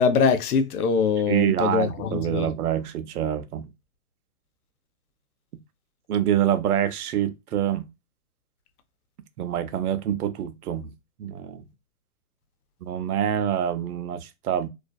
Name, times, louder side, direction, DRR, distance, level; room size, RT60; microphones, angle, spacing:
voice 1, 0.0-2.5, left 5 dB, 80° left, 0.6 m, -23 dB
voice 2, 1.3-3.7 6.1-7.9 9.4-10.9 11.2-11.6 12.8-14.7, right 10 dB, 85° right, 0.6 m, -26 dB
2.5 x 2.3 x 2.2 m
hypercardioid pair, 145°, 44 cm